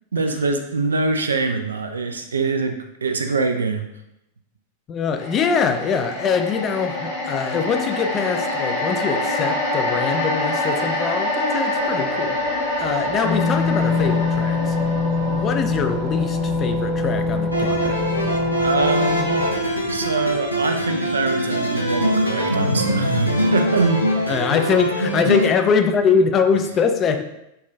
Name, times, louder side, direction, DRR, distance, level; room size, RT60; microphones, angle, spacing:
voice 1, 0.1-3.9 18.6-19.3 19.9-24.3, right 4 dB, 70° right, 6 dB, 0.3 m, -24 dB
voice 2, 4.9-12.4 12.8-14.8 15.3-18.0 24.3-27.2, left 6 dB, 30° left, 6 dB, 0.3 m, -23 dB
sound 1, 5.2-19.5 19.9-20.0, left 1 dB, 60° left, 1.2 m, -26 dB
sound 2, 13.2-19.5, left 3 dB, 25° right, 0.7 m, -24 dB
sound 3, 17.5-25.5, equal, 90° left, 0.5 m, -22 dB
5.5 x 2.3 x 2.2 m, 0.84 s
figure-of-eight pair, 90°, 0 cm